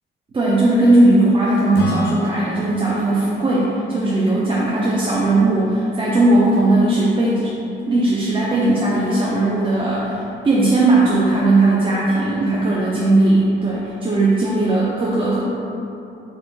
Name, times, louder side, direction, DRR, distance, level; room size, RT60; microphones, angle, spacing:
voice 1, 0.3-7.5 7.9-15.4, right 2 dB, 25° right, -6 dB, 0.5 m, -17 dB
Acoustic guitar / Strum, 1.7-5.3, equal, 60° left, 0.4 m, -31 dB
3.4 x 2.4 x 3.6 m, 2.8 s
cardioid pair, 90°, 20 cm